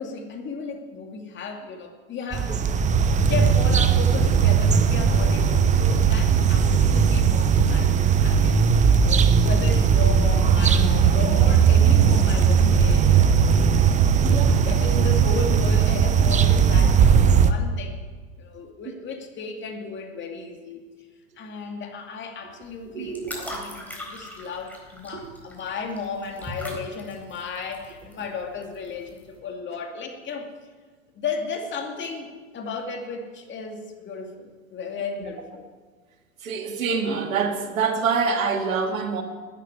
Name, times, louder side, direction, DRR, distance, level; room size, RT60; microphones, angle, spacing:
voice 1, 0.0-2.7 3.3-8.7 9.0-13.6 14.3-18.0 18.4-20.8 21.4-30.5 31.1-35.7, left 4 dB, 25° left, 3 dB, 2.5 m, -34 dB
sound 1, 2.3-17.5, right 6 dB, 20° right, 0.8 m, -18 dB
voice 2, 14.2-14.7 22.9-23.5 25.1-25.3 36.4-39.2, right 5 dB, 75° right, 4 dB, 2.3 m, -26 dB
sound 2, 22.6-29.4, left 1 dB, 5° left, 4.1 m, -40 dB
13.0 x 9.1 x 9.8 m, 1.4 s
hypercardioid pair, 105°, 41 cm